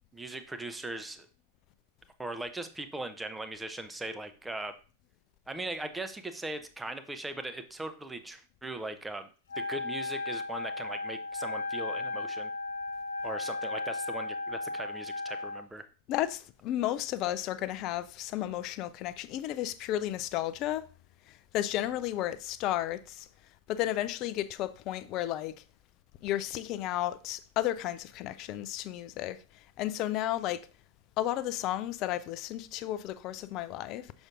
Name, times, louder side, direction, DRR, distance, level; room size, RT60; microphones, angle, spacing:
voice 1, 0.1-1.3 2.2-4.8 5.5-9.3 9.6-12.5 13.2-15.9, right 2 dB, 10° right, 0.7 m, -39 dB
Wind instrument woodwind instrument, 9.5-15.7, left 3 dB, 65° left, 0.7 m, -35 dB
voice 2, 16.1-20.9 21.3-23.3 23.7-25.5 26.2-30.6 31.2-34.1, left 13 dB, 40° left, 0.4 m, -33 dB
6.4 x 6.0 x 2.5 m
figure-of-eight pair, 90°, 0 cm